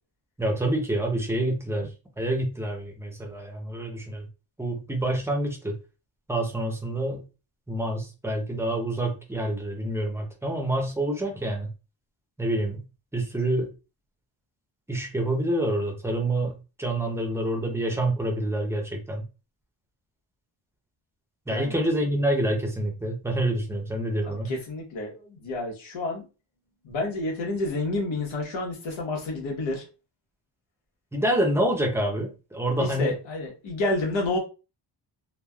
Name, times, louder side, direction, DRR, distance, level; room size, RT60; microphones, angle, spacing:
voice 1, 0.4-1.9 2.2-4.3 4.6-5.8 6.3-7.2 7.7-11.7 12.4-12.8 13.1-13.7 14.9-19.2 21.5-24.5 31.1-33.2, right 1 dB, 5° right, 2 dB, 0.6 m, -27 dB
voice 2, 21.5-21.8 24.2-26.2 26.8-29.8 32.8-34.4, left 2 dB, 90° left, 0 dB, 1.2 m, -29 dB
3.2 x 2.2 x 2.3 m, 0.31 s
wide cardioid pair, 160°, 45 cm